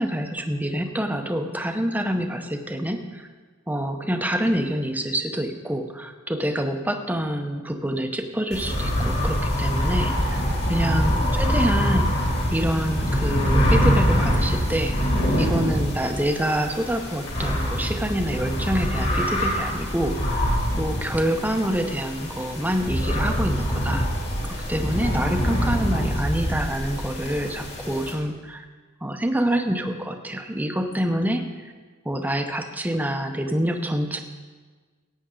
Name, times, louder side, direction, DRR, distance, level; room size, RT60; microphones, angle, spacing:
voice 1, 0.0-3.3 3.7-10.4 10.7-12.1 12.5-15.0 15.4-20.4 20.8-24.1 24.7-28.6 29.0-31.4 32.0-34.2, right 1 dB, 10° right, 5 dB, 0.7 m, -26 dB
sound 1, 8.5-28.1, equal, 50° left, 2.5 m, -24 dB
16.0 x 9.1 x 3.8 m, 1.4 s
head